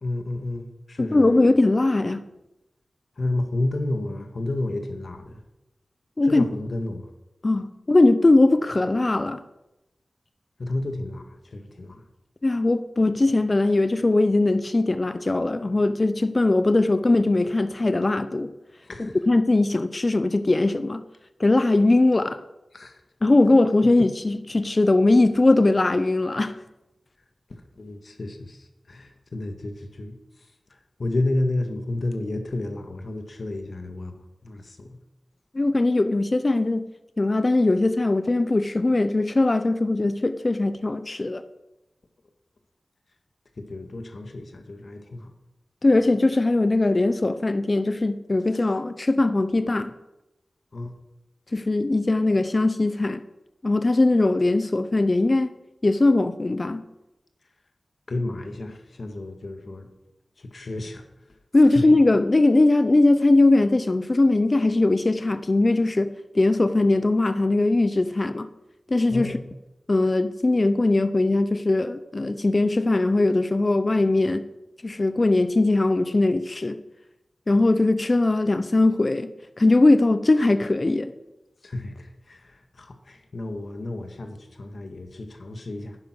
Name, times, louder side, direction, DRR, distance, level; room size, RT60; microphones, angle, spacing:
voice 1, 0.0-1.3 3.2-5.4 6.2-7.1 10.6-12.0 18.8-19.2 22.7-23.0 27.5-35.0 43.6-45.3 50.7-50.9 58.1-59.9 60.4-61.1 61.6-61.8 69.1-69.5 81.6-86.0, left 2 dB, 65° left, 6 dB, 1.8 m, -31 dB
voice 2, 1.1-2.2 6.2-6.4 7.4-9.4 12.4-18.5 19.0-21.0 21.4-22.4 23.2-26.5 35.5-36.9 37.2-41.4 45.8-49.9 51.5-53.2 53.6-55.5 55.8-56.8 61.5-66.1 66.3-68.5 68.9-69.3 69.9-74.4 74.8-76.8 77.5-79.3 79.6-81.1, left 2 dB, 40° left, 12 dB, 0.7 m, -20 dB
10.5 x 10.0 x 6.2 m, 0.93 s
cardioid pair, 55°, 0 cm